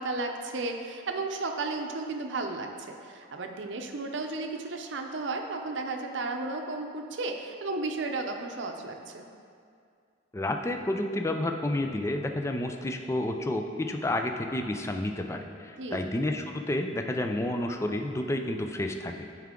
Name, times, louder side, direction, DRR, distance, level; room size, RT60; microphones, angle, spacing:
voice 1, 0.0-9.3 15.8-16.1, right 3 dB, 70° right, 4 dB, 0.6 m, -34 dB
voice 2, 10.3-19.3, left 1 dB, 15° left, 4 dB, 0.3 m, -30 dB
9.4 x 4.6 x 3.7 m, 2.3 s
head